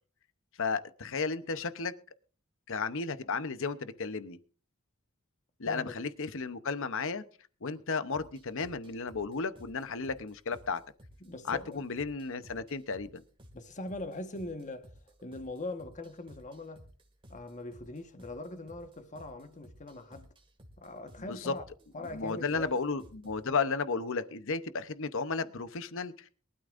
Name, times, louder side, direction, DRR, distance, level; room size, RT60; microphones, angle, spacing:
voice 1, 0.6-1.9 2.7-4.4 5.6-7.2 7.6-10.8 11.5-13.2 21.3-21.5 22.1-26.3, left 4 dB, 60° left, 0.8 m, -33 dB
voice 2, 5.6-6.0 11.2-11.9 13.5-16.9 17.3-20.3 20.8-21.6 21.9-22.8, left 2 dB, 35° left, 1.4 m, -41 dB
sound 1, 8.1-23.5, equal, 25° right, 2.1 m, -56 dB
22.5 x 12.5 x 2.6 m
head